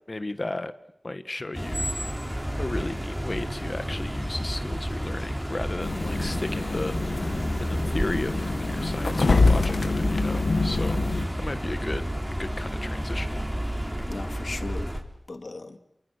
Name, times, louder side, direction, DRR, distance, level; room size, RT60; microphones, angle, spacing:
voice 1, 0.1-0.7 1.0-2.2 2.6-11.0 11.4-12.1 12.4-13.5, left 2 dB, 45° left, 1.6 m, -34 dB
sound 1, 1.5-15.0, equal, 10° right, 4.1 m, -31 dB
sound 2, 5.8-11.3, left 3 dB, 90° left, 1.8 m, -25 dB
voice 2, 14.0-15.8, left 3 dB, 70° left, 2.3 m, -38 dB
28.5 x 23.5 x 6.7 m
wide cardioid pair, 50°, 0 cm